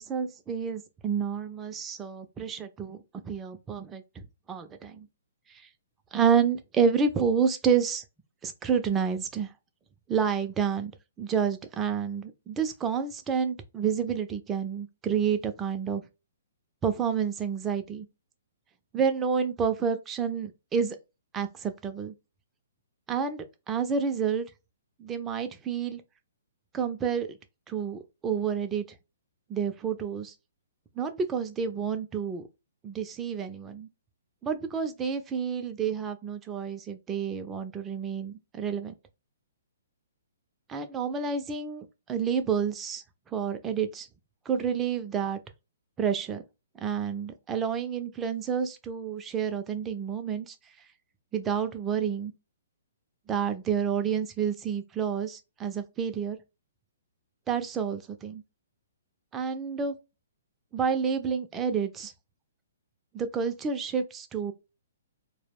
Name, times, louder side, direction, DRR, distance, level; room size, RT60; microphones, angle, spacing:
voice 1, 0.0-3.0 3.2-4.2 4.5-5.1 6.1-8.0 8.4-9.5 10.1-10.9 11.2-16.0 16.8-18.1 18.9-21.0 21.3-22.1 23.1-24.5 25.0-26.0 26.7-27.3 27.7-28.8 29.5-30.3 31.0-32.4 32.8-33.9 34.4-38.9 40.7-43.0 43.3-44.1 44.5-45.4 46.0-46.4 46.8-50.6 51.3-52.3 53.3-56.4 57.5-58.4 59.3-59.9 60.7-62.1 63.1-64.5, right 6 dB, 15° right, 0.4 m, -29 dB
2.2 x 2.0 x 3.3 m
hypercardioid pair, 130°, 0 cm